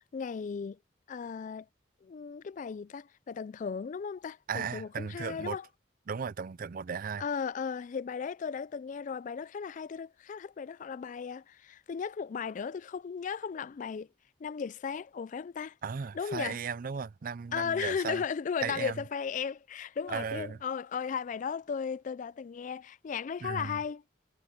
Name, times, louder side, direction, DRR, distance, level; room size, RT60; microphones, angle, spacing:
voice 1, 0.1-0.8 1.1-1.7 2.0-5.7 7.2-14.1 14.4-15.8 16.1-16.6 17.5-24.0, left 6 dB, 45° left, 0.3 m, -36 dB
voice 2, 4.5-5.6 6.1-7.2 15.8-18.2 18.6-19.0 20.1-20.6 23.4-23.8, right 6 dB, 50° right, 0.4 m, -36 dB
head